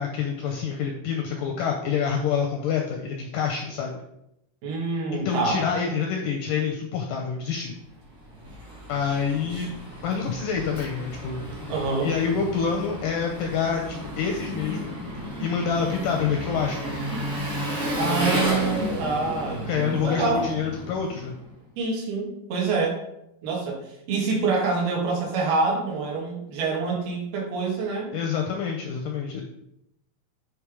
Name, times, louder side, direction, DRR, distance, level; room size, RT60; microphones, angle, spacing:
voice 1, 0.0-4.0 5.1-7.7 8.9-9.7 10.0-14.9 15.4-17.0 19.7-21.3 28.1-29.4, left 6 dB, 80° left, 1 dB, 1.9 m, -27 dB
voice 2, 4.6-5.6 9.5-9.7 11.7-12.1 18.0-20.5 21.8-23.0 23.4-23.8 24.1-28.2, right 4 dB, 75° right, -1 dB, 3.4 m, -26 dB
Engine, 7.9-21.5, equal, 45° right, 1.0 m, -32 dB
7.9 x 3.3 x 4.7 m, 0.82 s
omnidirectional pair, 4.5 m